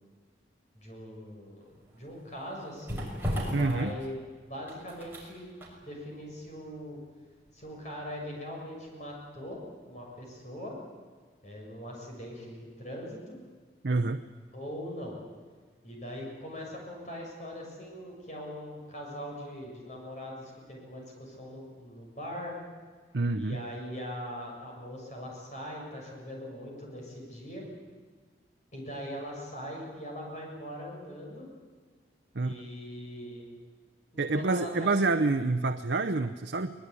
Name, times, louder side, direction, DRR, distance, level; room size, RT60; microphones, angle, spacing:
voice 1, 0.8-1.6 1.9-3.1 3.3-4.2 4.5-5.5 5.8-7.0 7.5-9.6 9.9-10.8 11.4-13.4 14.5-15.2 15.8-22.6 23.3-27.7 28.7-31.5 32.4-33.5 34.1-35.1, equal, 40° left, -1 dB, 7.1 m, -41 dB
sound 1, 1.6-9.6 9.9-10.1, equal, 10° right, 5.9 m, -39 dB
voice 2, 3.5-3.9 13.8-14.2 23.1-23.6 32.3-32.6 34.2-36.7, right 3 dB, 75° right, 8 dB, 0.8 m, -27 dB
23.0 x 20.0 x 9.8 m, 1.5 s
head